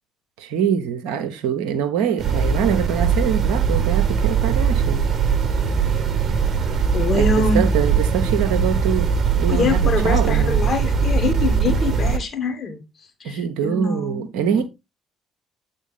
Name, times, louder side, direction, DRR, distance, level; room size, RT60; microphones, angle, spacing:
voice 1, 0.4-5.1 7.1-9.1 9.4-10.6 13.2-14.6, right 8 dB, 65° right, 0.7 m, -24 dB
sound 1, 2.2-12.2, right 6 dB, 40° right, 1.1 m, -20 dB
voice 2, 6.9-7.6 9.5-12.8 13.2-14.3 14.5-14.6, left 3 dB, 40° left, 1.7 m, -24 dB
8.1 x 3.8 x 4.0 m
figure-of-eight pair, 50°, 0 cm